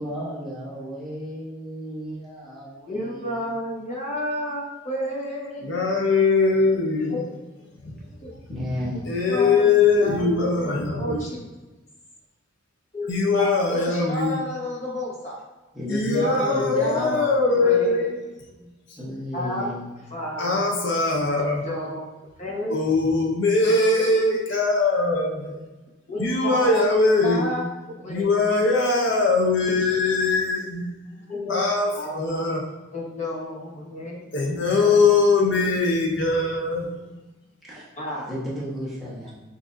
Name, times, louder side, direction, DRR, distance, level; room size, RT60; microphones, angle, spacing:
voice 1, 0.0-3.5 8.5-9.1 15.7-17.2 19.0-19.9 37.7-37.9 38.3-39.3, equal, ahead, -9 dB, 1.1 m, -33 dB
voice 2, 2.8-5.8 7.1-7.3 8.2-8.3 9.3-11.5 12.9-15.4 15.9-18.1 18.6-18.7 19.3-19.7 20.1-20.6 21.6-22.0 22.4-22.7 26.1-26.9 27.2-27.6 27.9-28.5 31.3-31.6 31.9-32.5 32.9-34.3 34.8-35.1 38.0-38.3, equal, 35° left, -4 dB, 1.1 m, -31 dB
voice 3, 5.6-7.2 7.8-8.0 8.5-11.2 13.1-14.4 15.9-18.2 18.9-19.0 20.4-21.7 22.7-25.6 26.2-27.5 28.1-31.0 31.5-32.6 34.3-37.1, left 3 dB, 65° left, -1 dB, 0.7 m, -21 dB
6.0 x 2.7 x 2.5 m, 1.1 s
head